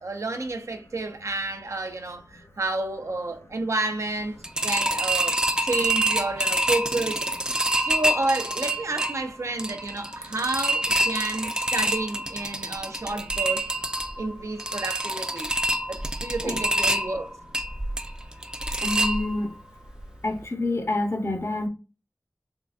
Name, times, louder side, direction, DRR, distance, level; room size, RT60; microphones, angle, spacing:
voice 1, 0.0-4.4 4.6-5.4 5.6-7.3 7.8-13.7 14.2-15.5 15.9-17.3, right 2 dB, 65° right, 0.5 m, -30 dB
sound 1, 4.4-19.6 20.0-20.1 20.4-20.5, right 1 dB, 15° right, 0.4 m, -27 dB
voice 2, 18.8-19.5 20.2-21.7, left 2 dB, 50° left, 0.7 m, -27 dB
3.7 x 3.2 x 2.4 m
wide cardioid pair, 60°, 5 cm